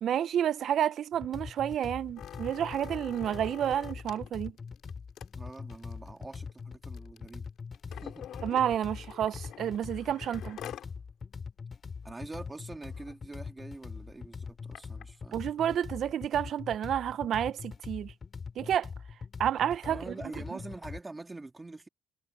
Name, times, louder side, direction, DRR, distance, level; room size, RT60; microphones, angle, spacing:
voice 1, 0.0-4.5 8.4-10.6 15.3-18.1 18.6-18.9 19.4-20.1, right 10 dB, 60° right, 0.4 m, -30 dB
sound 1, 1.1-21.0, left 5 dB, 35° left, 3.1 m, -43 dB
sound 2, 2.2-10.9 11.4-11.5 11.7-12.0 12.5-12.6 12.8-13.1 13.8-15.0 15.8-15.9, left 11 dB, 70° left, 3.2 m, -47 dB
voice 2, 5.3-7.5 7.8-8.3 12.0-15.4 19.9-21.9, right 2 dB, 15° right, 2.6 m, -45 dB
cardioid pair, 115°, 0 cm